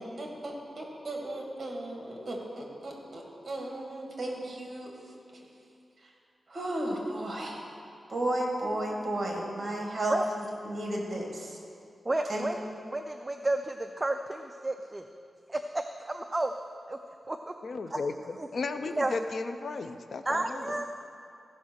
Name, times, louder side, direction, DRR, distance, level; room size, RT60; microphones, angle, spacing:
voice 1, 0.0-4.9 5.3-5.5 6.5-7.6 8.1-11.6 12.3-12.4, right 1 dB, 40° right, -1 dB, 2.2 m, -34 dB
voice 2, 12.1-12.6 12.8-15.0 15.5-16.5 16.9-17.0 17.3-17.5 17.9-18.0 18.4-18.5 19.0-19.2 20.3-20.8, right 2 dB, 20° right, 5 dB, 0.4 m, -31 dB
voice 3, 17.6-20.7, left 3 dB, 60° left, 9 dB, 0.5 m, -35 dB
15.0 x 5.4 x 6.3 m, 2.5 s
wide cardioid pair, 125°, 0 cm